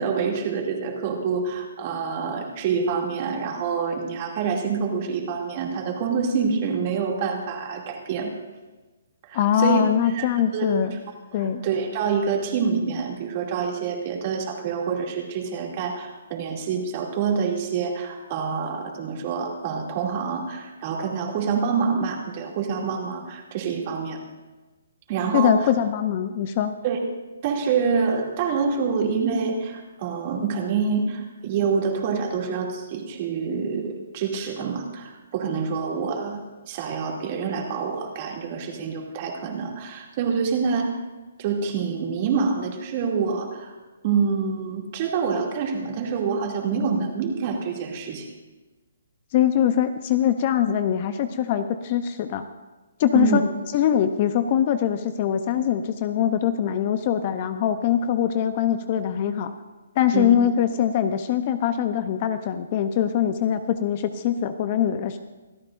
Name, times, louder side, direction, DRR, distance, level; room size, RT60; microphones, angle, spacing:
voice 1, 0.0-8.3 9.3-9.8 10.1-10.3 10.5-10.7 11.6-24.2 25.1-25.7 26.8-27.0 27.4-40.9 41.4-43.7 44.0-48.3 53.1-53.4 60.1-60.3, right 5 dB, 30° right, 0 dB, 2.5 m, -26 dB
voice 2, 9.3-11.0 11.3-11.7 25.3-26.7 49.3-52.4 53.0-53.5 53.7-59.5 60.0-65.2, left 9 dB, 35° left, 10 dB, 0.7 m, -22 dB
26.0 x 13.0 x 2.6 m, 1.2 s
hypercardioid pair, 160°, 0 cm